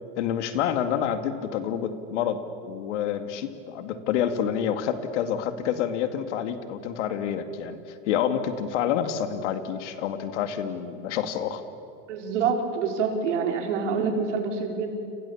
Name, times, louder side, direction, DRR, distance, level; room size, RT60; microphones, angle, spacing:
voice 1, 0.2-11.6, left 9 dB, 80° left, 9 dB, 2.3 m, -28 dB
voice 2, 12.1-15.0, right 5 dB, 85° right, 3 dB, 4.2 m, -26 dB
29.5 x 27.5 x 7.2 m, 2.8 s
supercardioid pair, 110°, 35 cm